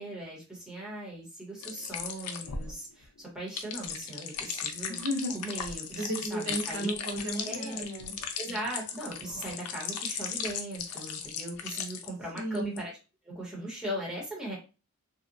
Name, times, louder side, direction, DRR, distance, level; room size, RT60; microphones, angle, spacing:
voice 1, 0.0-5.0 5.3-6.9 7.3-7.9 8.4-12.9 13.2-14.6, right 1 dB, 5° right, -4 dB, 0.9 m, -39 dB
sound 1, 1.6-12.1 12.4-12.8, left 7 dB, 80° left, 0.4 m, -37 dB
voice 2, 4.9-5.4 6.0-8.1 12.3-12.8, equal, 65° right, 0 dB, 0.7 m, -34 dB
2.8 x 2.1 x 2.5 m, 0.32 s
head